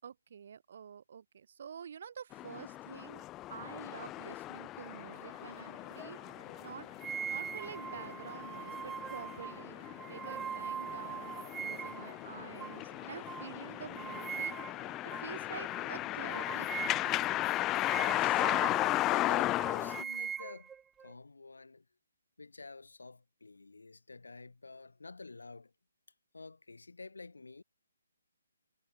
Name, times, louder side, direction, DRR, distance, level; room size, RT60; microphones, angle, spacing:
voice 1, 0.0-6.2 6.6-6.9 7.2-9.8 10.1-14.5 15.0-17.1, right 7 dB, 55° right, 6.7 m, -48 dB
sound 1, 2.3-20.0, left 16 dB, 20° left, 1.1 m, -36 dB
sound 2, 4.8-18.0, right 3 dB, 80° right, 3.1 m, -57 dB
sound 3, 7.0-12.1 12.6-12.8 13.3-13.5 14.0-14.9 15.1-15.3 15.7-15.9 16.3-19.0 19.3-21.1, right 7 dB, 10° right, 0.4 m, -41 dB
voice 2, 17.9-20.7 21.0-21.9 22.4-25.7 26.3-27.6, left 3 dB, 80° left, 2.9 m, -50 dB
figure-of-eight pair, 145°, 0 cm